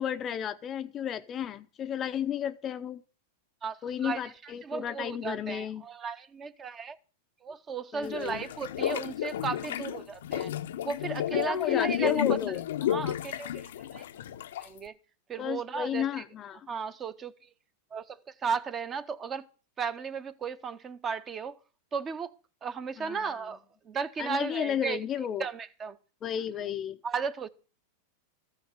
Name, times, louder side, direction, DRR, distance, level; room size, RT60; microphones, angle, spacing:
voice 1, 0.0-3.0 3.8-5.8 7.9-8.4 11.5-12.6 15.4-16.7 23.0-23.3 24.2-25.4 26.2-27.0, left 9 dB, 20° left, 0.5 m, -33 dB
voice 2, 3.6-7.0 7.4-10.5 10.8-14.0 14.6-14.9 15.3-16.1 16.7-17.5 17.9-19.4 19.8-21.6 21.9-25.0 25.4-26.0 27.0-27.5, right 5 dB, 20° right, 0.7 m, -35 dB
sound 1, 8.0-14.8, left 11 dB, 80° left, 0.8 m, -31 dB
14.5 x 6.3 x 8.0 m
supercardioid pair, 160°, 0 cm